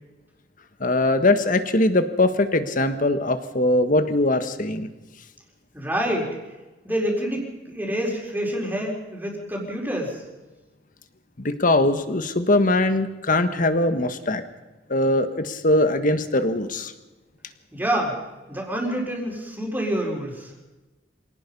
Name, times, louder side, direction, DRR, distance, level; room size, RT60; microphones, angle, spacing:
voice 1, 0.8-4.9 11.4-14.4 14.9-16.9, left 2 dB, 45° left, 9 dB, 1.5 m, -21 dB
voice 2, 5.7-6.4 6.8-10.2 17.7-18.2 18.5-20.5, equal, 10° right, -1 dB, 4.5 m, -27 dB
26.0 x 18.5 x 5.5 m, 1.1 s
head